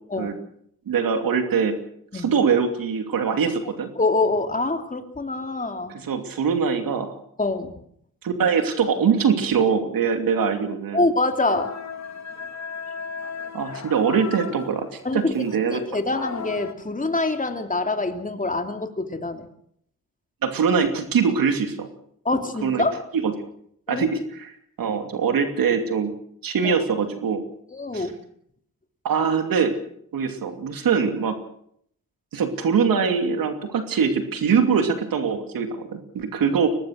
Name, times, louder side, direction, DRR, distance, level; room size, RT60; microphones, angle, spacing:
voice 1, 0.9-1.7 2.1-3.9 5.9-7.1 8.2-11.0 13.5-15.8 20.4-21.9 22.6-22.9 23.1-23.3 23.9-26.1 26.4-27.4 27.9-28.1 29.0-29.8 30.1-31.4 32.3-36.7, right 6 dB, 80° right, 6 dB, 2.8 m, -23 dB
voice 2, 4.0-6.0 7.4-7.7 10.9-11.7 15.0-15.3 15.7-19.5 22.2-23.0 23.9-24.1 26.6-26.8 27.7-28.2, left 2 dB, 25° left, 6 dB, 2.9 m, -25 dB
sound 1, 11.4-16.7, left 6 dB, 55° left, 2.3 m, -36 dB
23.0 x 19.0 x 6.5 m, 0.68 s
cardioid pair, 80°, 34 cm